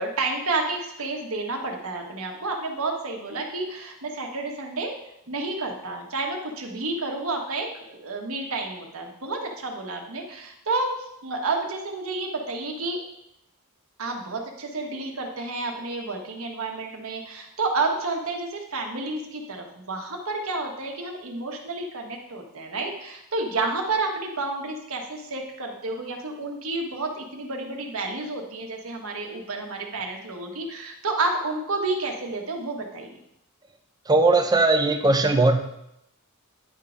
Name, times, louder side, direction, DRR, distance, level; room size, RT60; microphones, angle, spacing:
voice 1, 0.0-4.9 5.3-10.9 11.2-13.0 14.0-33.2, right 3 dB, 75° right, 2 dB, 1.3 m, -30 dB
voice 2, 34.1-35.6, right 2 dB, 20° right, 6 dB, 0.6 m, -19 dB
10.0 x 3.7 x 5.0 m, 0.80 s
head